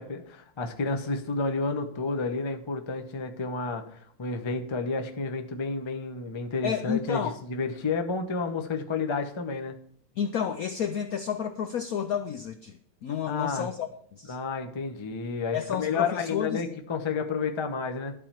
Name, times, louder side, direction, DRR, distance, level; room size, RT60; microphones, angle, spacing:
voice 1, 0.0-9.7 13.3-13.7 14.3-18.1, left 4 dB, 30° left, 6 dB, 0.5 m, -31 dB
voice 2, 6.6-7.4 10.2-14.4 15.5-16.6, left 8 dB, 70° left, 9 dB, 0.8 m, -31 dB
12.5 x 4.3 x 7.4 m, 0.63 s
omnidirectional pair, 2.2 m